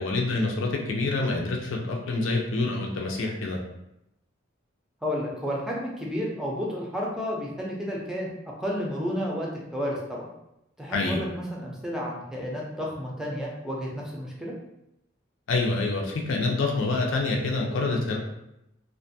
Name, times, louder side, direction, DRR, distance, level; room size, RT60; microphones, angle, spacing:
voice 1, 0.0-3.6 10.9-11.2 15.5-18.2, left 3 dB, 85° left, 1 dB, 0.5 m, -26 dB
voice 2, 5.0-8.3 8.6-10.2 10.8-14.6, equal, 5° right, -3 dB, 0.5 m, -31 dB
2.5 x 2.2 x 2.6 m, 0.84 s
head